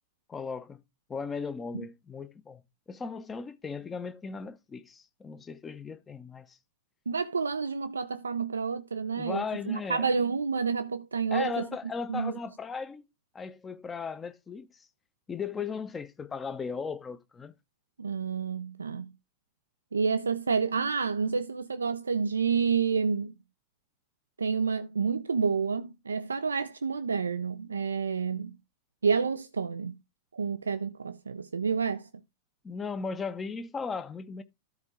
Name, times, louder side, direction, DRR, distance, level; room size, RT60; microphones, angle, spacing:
voice 1, 0.3-0.8 1.1-2.6 2.9-6.6 9.2-10.1 11.3-13.0 13.3-14.9 15.3-17.5 32.6-34.4, left 5 dB, 20° left, 0.8 m, -37 dB
voice 2, 7.1-11.6 12.1-12.3 18.0-19.1 19.9-23.3 24.4-28.5 29.0-29.9 30.3-32.1, right 5 dB, 75° right, 0.4 m, -29 dB
13.0 x 4.5 x 3.7 m
figure-of-eight pair, 90°, 0 cm